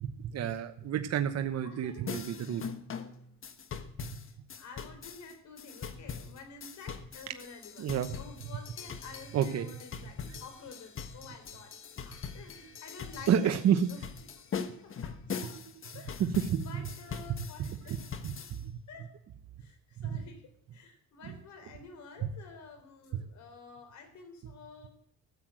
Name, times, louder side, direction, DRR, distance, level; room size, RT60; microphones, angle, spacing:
voice 1, 0.0-2.6 7.8-8.1 9.3-9.7 10.3-10.4 13.3-13.9 16.2-16.7 17.9-18.0 18.5-18.7 20.0-20.2 22.2-22.3, right 9 dB, 55° right, 7 dB, 1.0 m, -29 dB
voice 2, 1.6-2.2 4.1-13.6 13.9-14.3 14.8-15.6 15.9-16.3 16.6-18.0 18.9-19.1 19.6-24.9, left 4 dB, 65° left, 7 dB, 3.8 m, -50 dB
sound 1, 2.1-18.6, left 6 dB, 45° left, 1.3 m, -42 dB
14.5 x 7.9 x 7.7 m, 0.67 s
cardioid pair, 115°, 30 cm